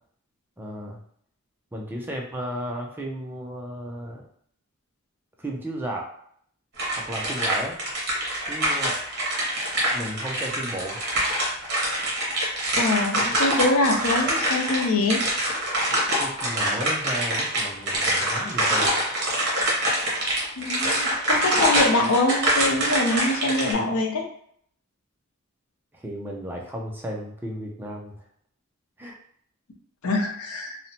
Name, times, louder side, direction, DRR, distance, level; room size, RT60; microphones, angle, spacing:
voice 1, 0.6-1.0 1.7-4.2 5.4-6.1 6.9-7.8 8.5-9.0 9.9-11.0 16.2-19.0 25.9-28.2 29.0-29.2, right 1 dB, 10° right, -1 dB, 0.3 m, -34 dB
sound 1, 6.8-23.7, right 1 dB, 50° right, 0.9 m, -25 dB
voice 2, 12.7-15.2 20.6-24.2 30.0-30.8, left 2 dB, 75° left, 2 dB, 0.5 m, -24 dB
2.8 x 2.1 x 2.7 m, 0.64 s
head